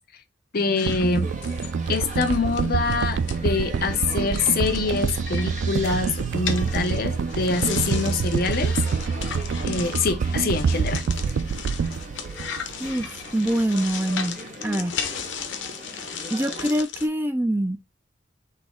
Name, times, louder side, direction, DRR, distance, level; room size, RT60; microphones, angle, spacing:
voice 1, 0.5-1.3 1.9-8.7 9.6-11.0, left 4 dB, 55° left, 0.7 m, -25 dB
sound 1, 0.8-3.4 3.8-4.0 4.3-17.1, left 7 dB, 90° left, 0.7 m, -36 dB
sound 2, 0.9-13.2 13.5-13.6, right 5 dB, 80° right, 0.4 m, -26 dB
sound 3, 1.2-16.8, right 2 dB, 45° right, 1.1 m, -40 dB
voice 2, 12.8-15.0 16.3-17.8, right 1 dB, 10° right, 0.4 m, -25 dB
4.1 x 2.9 x 3.6 m
head